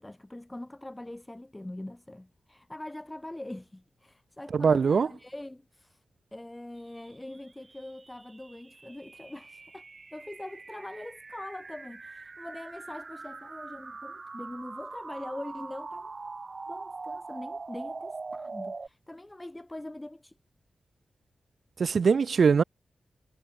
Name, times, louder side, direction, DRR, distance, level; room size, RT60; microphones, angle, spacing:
voice 1, 0.0-6.0 6.3-9.8 10.1-16.1 16.7-20.4, left 1 dB, 10° left, 0.8 m, -43 dB
voice 2, 4.5-5.1 21.8-22.6, right 5 dB, 55° right, 0.7 m, -22 dB
sound 1, 7.0-18.9, right 3 dB, 35° right, 1.9 m, -43 dB
wide cardioid pair, 135°, 0 cm